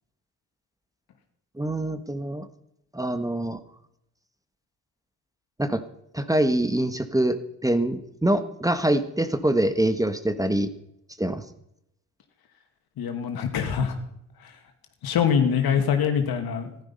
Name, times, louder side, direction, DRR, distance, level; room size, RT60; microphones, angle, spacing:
voice 1, 1.6-2.4 2.9-3.6 5.6-5.8 6.1-10.7 11.2-11.4, right 1 dB, 10° right, 10 dB, 1.4 m, -24 dB
voice 2, 13.0-14.0 14.4-14.5 15.0-16.8, left 7 dB, 65° left, 6 dB, 2.3 m, -24 dB
15.0 x 12.0 x 5.6 m, 0.79 s
hypercardioid pair, 50°, 40 cm